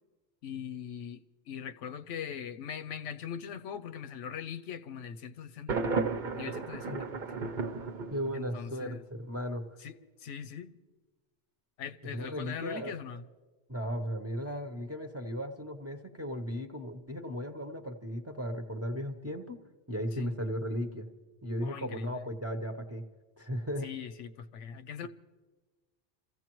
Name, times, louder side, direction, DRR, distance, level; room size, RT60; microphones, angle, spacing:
voice 1, 0.4-5.8 6.3-7.0 7.4-7.6 8.3-9.0 9.8-9.9 10.2-10.7 11.8-13.2 20.2-20.3 21.6-22.2 23.8-25.1, left 8 dB, 90° left, 1.0 m, -41 dB
Thunder, 5.7-8.7, right 4 dB, 45° right, 0.8 m, -34 dB
voice 2, 8.1-9.6 12.0-12.9 13.7-19.6 19.9-21.1 21.4-23.0 23.4-23.9, equal, 15° right, 0.7 m, -36 dB
27.5 x 15.5 x 3.0 m
omnidirectional pair, 1.2 m